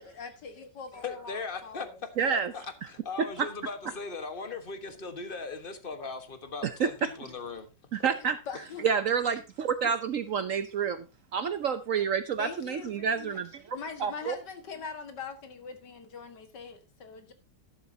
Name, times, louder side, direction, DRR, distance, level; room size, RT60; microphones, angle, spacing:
voice 1, 0.0-2.0 8.2-8.9 12.4-13.4 13.7-17.3, left 5 dB, 75° left, 2.2 m, -42 dB
voice 2, 0.9-1.9 2.3-7.7 8.0-8.1, left 4 dB, 35° left, 1.4 m, -38 dB
voice 3, 2.2-2.5 3.2-3.5 6.8-7.1 7.9-8.4 8.8-11.0 11.3-14.3, right 6 dB, 60° right, 0.9 m, -29 dB
12.0 x 11.5 x 2.8 m
omnidirectional pair, 1.9 m